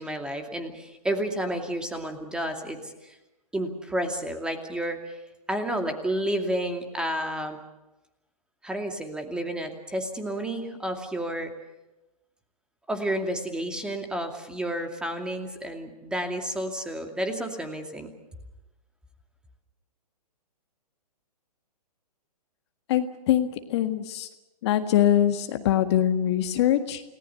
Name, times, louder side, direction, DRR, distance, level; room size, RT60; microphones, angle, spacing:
voice 1, 0.0-3.2 3.5-5.2 5.5-7.6 8.6-11.5 12.9-18.1, right 1 dB, 5° right, 5 dB, 2.5 m, -31 dB
voice 2, 22.9-24.3 24.6-27.0, left 11 dB, 40° left, 7 dB, 1.7 m, -23 dB
29.5 x 18.5 x 6.9 m, 1.0 s
figure-of-eight pair, 125°, 20 cm